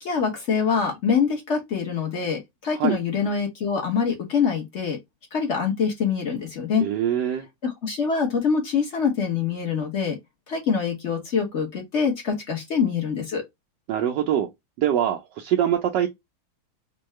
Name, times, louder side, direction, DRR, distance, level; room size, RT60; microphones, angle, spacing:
voice 1, 0.0-5.0 5.3-6.8 7.6-10.2 10.5-13.4, left 6 dB, 45° left, 0.9 m, -24 dB
voice 2, 6.8-7.4 13.9-14.5 14.8-16.1, right 10 dB, 75° right, 1.0 m, -23 dB
4.5 x 2.3 x 3.1 m
omnidirectional pair, 2.4 m